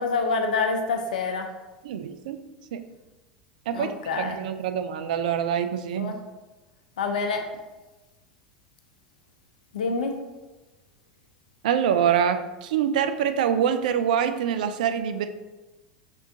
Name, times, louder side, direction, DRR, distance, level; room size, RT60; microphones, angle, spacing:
voice 1, 0.0-1.5 3.7-4.4 6.0-6.2 7.0-7.4 9.7-10.2, left 4 dB, 75° left, 5 dB, 0.6 m, -26 dB
voice 2, 1.8-2.4 2.7-2.8 3.7-6.2 11.6-15.3, right 8 dB, 70° right, 10 dB, 0.4 m, -25 dB
5.3 x 3.4 x 2.7 m, 1.1 s
hypercardioid pair, 90°, 4 cm